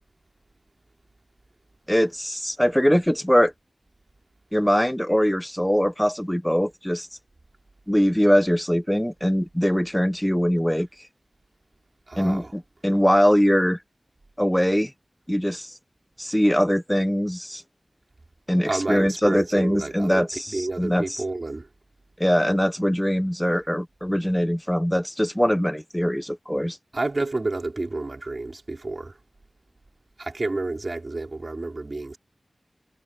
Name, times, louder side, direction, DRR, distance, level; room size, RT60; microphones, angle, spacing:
voice 1, 1.9-3.5 4.5-7.1 7.9-10.9 12.2-13.8 14.4-14.9 15.3-15.7 16.2-17.6 18.5-21.2 22.2-26.8, equal, 5° left, 0.6 m, -22 dB
voice 2, 12.1-12.5 18.6-21.7 26.9-29.1 30.2-32.2, right 2 dB, 50° right, 4.7 m, -30 dB
wide cardioid pair, 65°, 0 cm